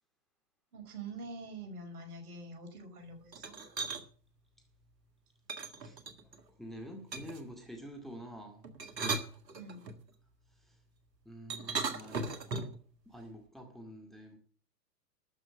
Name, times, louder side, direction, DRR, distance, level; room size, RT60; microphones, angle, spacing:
voice 1, 0.7-3.6 9.5-9.8, right 2 dB, 60° right, 5.4 m, -45 dB
sound 1, 3.3-4.0 5.5-6.4 7.1-7.5 8.6-10.0 11.5-12.8, right 4 dB, 80° right, 2.1 m, -37 dB
voice 2, 6.6-8.7 10.6-10.8 11.2-12.7 13.1-14.4, equal, ahead, 2.2 m, -47 dB
13.0 x 6.2 x 8.7 m
hypercardioid pair, 115°, 49 cm